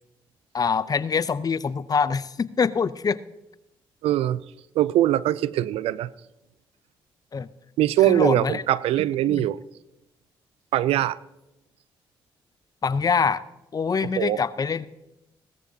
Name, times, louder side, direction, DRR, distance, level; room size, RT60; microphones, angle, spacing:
voice 1, 0.5-3.2 7.3-7.5 8.1-8.6 9.3-9.5 12.8-13.4 13.7-14.9, left 5 dB, 40° left, 16 dB, 0.6 m, -24 dB
voice 2, 4.0-4.4 4.8-6.1 7.8-9.6 10.7-11.2 14.2-14.4, right 13 dB, 80° right, 18 dB, 0.4 m, -22 dB
17.0 x 13.5 x 2.8 m, 0.91 s
supercardioid pair, 60°, 10 cm